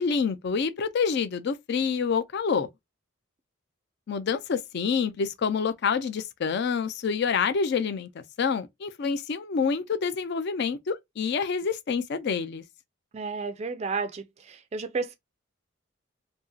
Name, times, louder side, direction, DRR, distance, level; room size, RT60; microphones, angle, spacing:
voice 1, 0.0-2.7 4.1-12.6, left 5 dB, 55° left, 0.4 m, -27 dB
voice 2, 13.1-15.1, right 4 dB, 30° right, 0.3 m, -32 dB
2.8 x 2.6 x 2.2 m
head